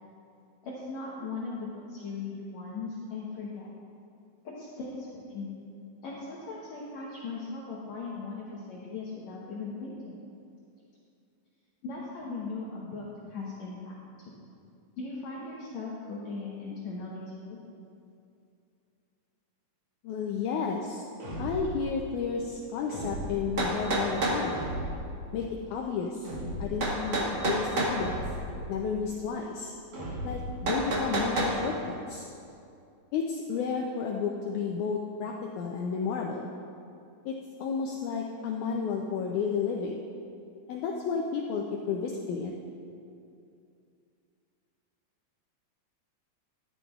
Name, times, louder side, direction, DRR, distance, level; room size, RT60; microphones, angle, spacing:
voice 1, 0.6-3.7 4.4-5.6 6.0-10.2 11.8-13.0 13.3-13.9 15.0-17.6, left 3 dB, 65° left, -5 dB, 1.8 m, -38 dB
voice 2, 20.0-21.0 21.4-24.6 25.3-26.3 26.6-28.1 28.7-29.7 30.2-31.7 32.1-32.2 33.1-36.4 37.2-40.0 40.7-42.5, left 6 dB, 90° left, 0 dB, 1.7 m, -32 dB
sound 1, 21.2-21.8 22.9-23.6 24.5-25.1 26.2-26.9 27.9-28.6 29.9-30.6, equal, 65° right, 4.3 m, -36 dB
sound 2, 23.1-23.2 23.6-24.4 26.8-28.0 30.7-31.6, right 2 dB, 85° right, 0.9 m, -28 dB
13.5 x 11.5 x 2.4 m, 2.5 s
omnidirectional pair, 4.2 m